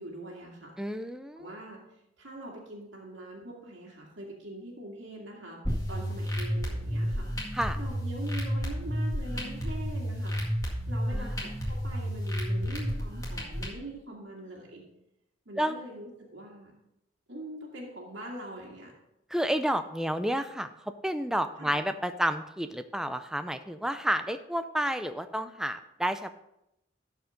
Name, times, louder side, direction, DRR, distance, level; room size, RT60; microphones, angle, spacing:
voice 1, 0.0-0.7 1.4-1.8 2.2-5.6 5.9-10.4 10.9-11.5 11.8-14.8 15.5-16.7 17.3-18.9 21.6-21.8, right 1 dB, 70° right, -3 dB, 2.1 m, -43 dB
voice 2, 0.8-1.5 7.5-7.8 11.1-11.4 15.6-15.8 19.3-20.7 21.0-26.3, equal, 5° right, 9 dB, 0.4 m, -30 dB
sound 1, 5.6-13.6, equal, 15° left, 1.9 m, -31 dB
12.0 x 4.8 x 5.1 m, 0.84 s
head